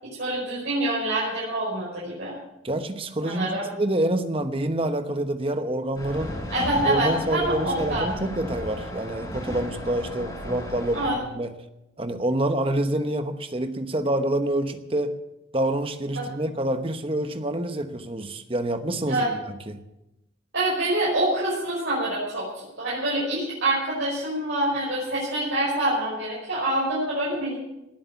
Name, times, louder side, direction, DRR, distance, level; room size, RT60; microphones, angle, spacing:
voice 1, 0.0-2.4 3.2-3.6 6.5-8.1 10.9-11.2 16.2-16.3 19.1-19.3 20.5-27.6, right 1 dB, 75° right, -6 dB, 5.4 m, -26 dB
voice 2, 2.6-6.4 6.9-11.5 12.0-15.1 15.5-19.8, right 1 dB, 30° right, 8 dB, 1.0 m, -27 dB
sound 1, 6.0-11.1, left 1 dB, 20° left, 4.3 m, -34 dB
18.5 x 8.6 x 7.2 m, 0.93 s
head